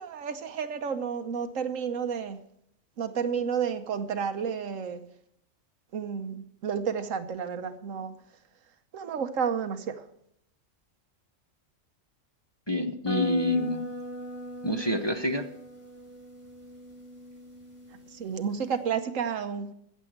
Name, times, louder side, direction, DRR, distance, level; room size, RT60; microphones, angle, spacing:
voice 1, 0.0-2.4 3.0-5.0 5.9-8.2 8.9-10.0 18.1-19.7, right 6 dB, 80° right, 9 dB, 1.3 m, -31 dB
voice 2, 12.7-13.9 14.6-15.5, left 1 dB, 25° left, 4 dB, 0.8 m, -27 dB
sound 1, 13.1-18.8, right 1 dB, 55° left, 7.0 m, -40 dB
14.5 x 7.5 x 6.5 m, 0.73 s
omnidirectional pair, 1.4 m